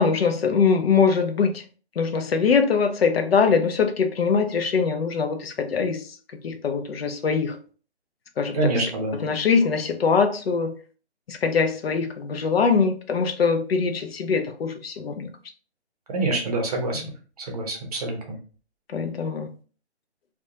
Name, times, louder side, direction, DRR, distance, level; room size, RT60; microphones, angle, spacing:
voice 1, 0.0-1.6 2.0-6.1 6.4-7.6 8.4-8.7 9.2-10.7 11.3-15.3 18.9-19.5, left 5 dB, 60° left, 0.5 m, -22 dB
voice 2, 8.5-9.1 16.1-17.0 17.4-18.4, right 2 dB, 35° right, 0.6 m, -26 dB
2.4 x 2.2 x 2.7 m
figure-of-eight pair, 150°, 34 cm